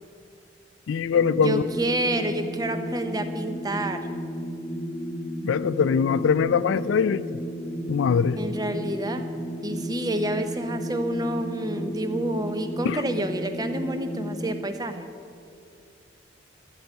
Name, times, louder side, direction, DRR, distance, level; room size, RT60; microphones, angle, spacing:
voice 1, 0.9-1.6 5.4-7.2 7.9-8.4 12.8-13.0, left 6 dB, 80° left, 16 dB, 0.3 m, -22 dB
sound 1, 1.1-14.7, equal, 30° left, 1.0 m, -33 dB
voice 2, 1.4-4.0 8.4-9.3 9.6-15.1, right 1 dB, 20° right, 8 dB, 0.6 m, -29 dB
12.5 x 5.5 x 9.1 m, 2.4 s
head